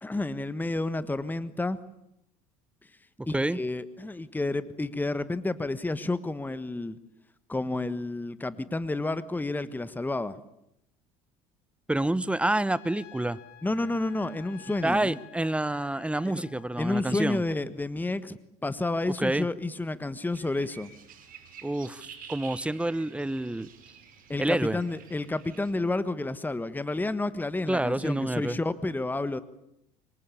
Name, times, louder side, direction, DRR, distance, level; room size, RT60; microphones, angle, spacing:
voice 1, 0.0-1.8 3.3-7.0 7.5-10.4 13.6-15.2 16.2-16.4 16.8-20.9 24.3-29.4, left 2 dB, 10° left, 15 dB, 1.4 m, -30 dB
voice 2, 3.2-3.6 11.9-13.4 14.8-17.4 19.2-19.5 21.6-23.7 24.4-24.8 27.7-28.6, right 1 dB, 5° right, 20 dB, 1.0 m, -28 dB
Trumpet, 12.6-17.0, left 10 dB, 60° left, 2.8 m, -51 dB
sound 1, 20.3-25.7, right 7 dB, 50° right, 6.0 m, -49 dB
26.5 x 23.0 x 8.6 m, 0.80 s
hypercardioid pair, 70°, 19 cm